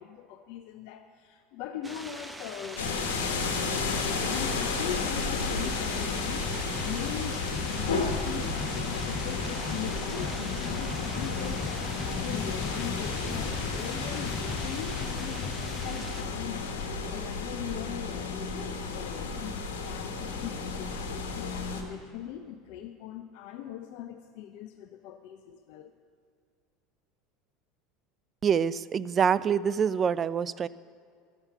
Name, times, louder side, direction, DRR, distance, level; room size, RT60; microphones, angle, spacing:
voice 1, 0.0-2.9 3.6-6.5 6.8-25.9, left 10 dB, 65° left, 7 dB, 0.5 m, -41 dB
sound 1, 1.8-16.2, right 1 dB, 10° right, 0.9 m, -43 dB
sound 2, 2.8-21.8, left 4 dB, 85° left, 1.2 m, -32 dB
sound 3, 5.6-15.8, left 3 dB, 20° left, 0.7 m, -39 dB
voice 2, 28.4-30.7, right 7 dB, 35° right, 18 dB, 0.3 m, -26 dB
12.5 x 7.1 x 6.8 m, 2.2 s
hypercardioid pair, 85°, 0 cm